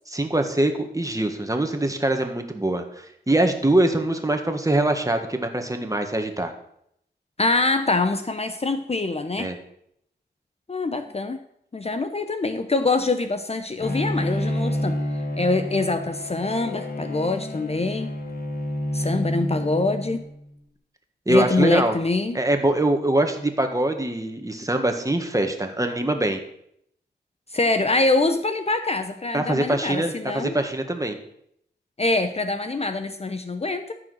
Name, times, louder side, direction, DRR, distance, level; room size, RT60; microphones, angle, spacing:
voice 1, 0.1-6.5 9.4-9.6 21.3-22.0 22.3-26.4 29.3-31.2, right 1 dB, 20° right, 5 dB, 1.6 m, -23 dB
voice 2, 7.4-9.5 10.7-11.4 11.7-15.0 15.4-18.1 18.9-20.3 21.3-22.4 27.5-30.6 32.0-33.9, left 3 dB, 35° left, 8 dB, 0.7 m, -24 dB
Bowed string instrument, 13.8-20.5, left 1 dB, 55° left, 1.5 m, -29 dB
13.5 x 4.9 x 6.4 m, 0.72 s
cardioid pair, 60°, 18 cm